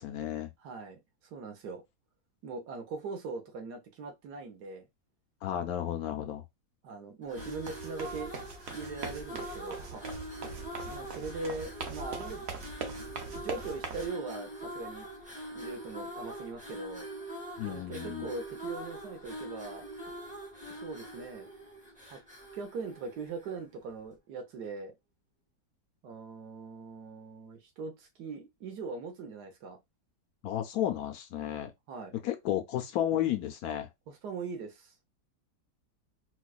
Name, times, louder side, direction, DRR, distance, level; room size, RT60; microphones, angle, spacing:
voice 1, 0.0-0.5 5.4-6.4 17.6-18.3 30.4-31.7 32.2-33.9, left 11 dB, 70° left, 0.9 m, -32 dB
voice 2, 0.6-1.8 2.4-4.8 6.8-8.3 8.7-10.1 10.8-12.5 13.0-15.1 15.5-17.1 17.6-19.9 20.7-21.5 22.1-22.2 22.5-24.9 26.0-29.8 31.9-32.2 34.1-34.9, right 4 dB, 70° right, 1.5 m, -41 dB
sound 1, 7.2-23.7, equal, 5° right, 0.6 m, -43 dB
sound 2, 7.4-14.1, right 4 dB, 55° right, 0.8 m, -42 dB
4.5 x 2.3 x 2.3 m
omnidirectional pair, 1.8 m